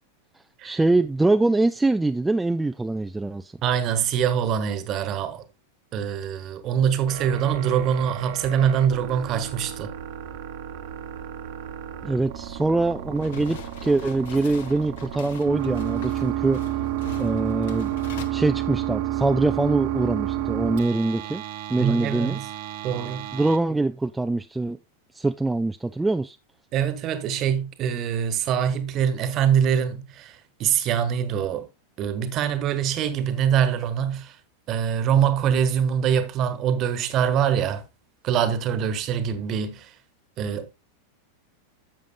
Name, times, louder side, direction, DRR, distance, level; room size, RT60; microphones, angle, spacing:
voice 1, 0.6-3.5 12.0-16.6 17.2-17.9 18.3-21.4 21.7-22.4 23.3-24.8 25.1-26.4, right 2 dB, 5° right, 0.4 m, -23 dB
voice 2, 3.6-5.4 5.9-9.9 21.8-22.5 22.8-23.3 26.7-31.7 32.0-34.3 34.7-37.8 38.2-39.9 40.4-40.8, right 8 dB, 35° right, 1.3 m, -24 dB
sound 1, 7.1-23.6, right 12 dB, 50° right, 1.1 m, -31 dB
sound 2, 13.2-18.3, left 8 dB, 55° left, 1.1 m, -42 dB
12.0 x 7.6 x 2.3 m
figure-of-eight pair, 90°, 0 cm